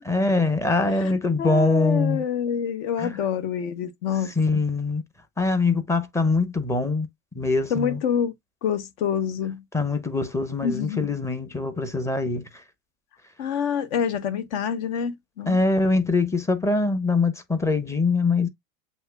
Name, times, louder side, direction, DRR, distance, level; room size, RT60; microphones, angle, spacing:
voice 1, 0.1-2.2 3.0-3.1 4.4-5.0 5.4-7.1 7.3-8.0 9.7-12.4 15.5-18.5, left 3 dB, 5° left, 0.7 m, -23 dB
voice 2, 0.8-4.3 7.7-8.3 8.6-9.6 10.6-11.1 13.4-15.6, left 8 dB, 55° left, 1.1 m, -27 dB
7.6 x 2.9 x 2.2 m
figure-of-eight pair, 85°, 41 cm